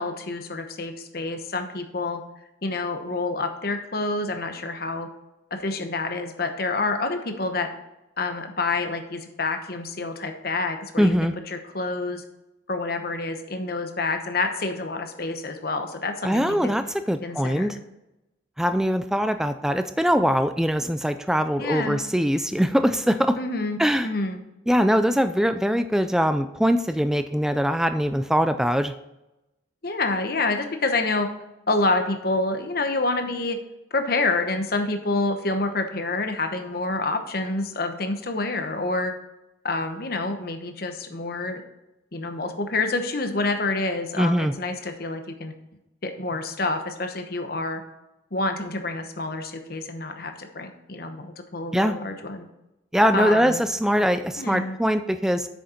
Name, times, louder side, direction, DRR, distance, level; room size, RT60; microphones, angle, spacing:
voice 1, 0.0-2.2 2.6-5.1 5.5-7.7 8.2-12.2 12.7-16.7 17.2-17.8 21.6-22.0 23.3-24.4 29.8-31.3 31.7-33.6 33.9-39.1 39.6-41.6 42.1-45.5 46.0-47.8 48.3-52.5 53.1-53.6 54.4-54.8, left 3 dB, 50° left, 6 dB, 1.0 m, -28 dB
voice 2, 11.0-11.3 16.2-17.8 18.6-23.4 23.8-24.1 24.7-28.9 44.2-44.5 51.7-52.0 52.9-55.5, equal, 5° right, 9 dB, 0.3 m, -22 dB
8.4 x 6.5 x 4.3 m, 0.92 s
head